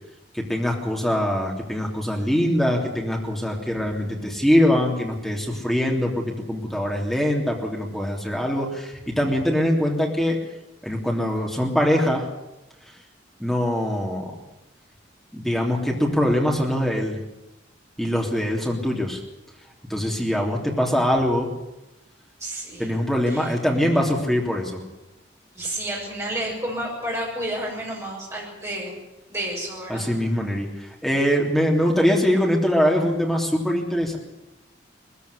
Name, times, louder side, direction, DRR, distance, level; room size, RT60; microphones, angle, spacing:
voice 1, 0.3-10.4 10.8-12.3 13.4-14.3 15.3-17.2 18.0-19.2 19.9-21.5 22.8-24.8 29.9-34.2, equal, ahead, -1 dB, 3.2 m, -23 dB
voice 2, 22.4-22.9 23.3-23.5 25.5-29.0 29.3-30.1, right 1 dB, 15° right, -3 dB, 7.1 m, -30 dB
20.0 x 15.0 x 9.8 m, 0.97 s
head